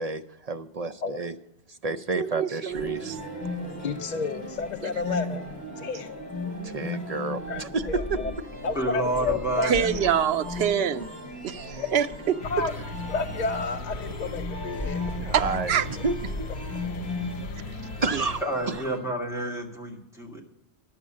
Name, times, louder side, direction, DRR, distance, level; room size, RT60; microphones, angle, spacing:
voice 1, 0.0-1.4 1.7-3.2 6.6-8.5 14.0-14.2 15.2-16.5 16.8-17.0 18.0-18.9, right 3 dB, 50° right, 0.5 m, -31 dB
voice 2, 2.2-3.2 9.6-11.1 11.4-12.4 15.3-15.4 15.7-15.8, right 8 dB, 80° right, 0.9 m, -25 dB
sound 1, 2.7-19.0, left 2 dB, 25° left, 4.0 m, -36 dB
voice 3, 3.8-5.4 5.8-6.1 7.5-7.6 7.9-8.3 8.6-9.9 11.8-11.9 12.5-12.7 13.1-15.0, left 4 dB, 55° left, 0.6 m, -30 dB
voice 4, 8.8-10.0 18.4-20.4, right 1 dB, 5° right, 1.9 m, -30 dB
sound 2, 12.4-18.4, left 4 dB, 90° left, 0.8 m, -39 dB
11.0 x 6.9 x 7.4 m
omnidirectional pair, 1.1 m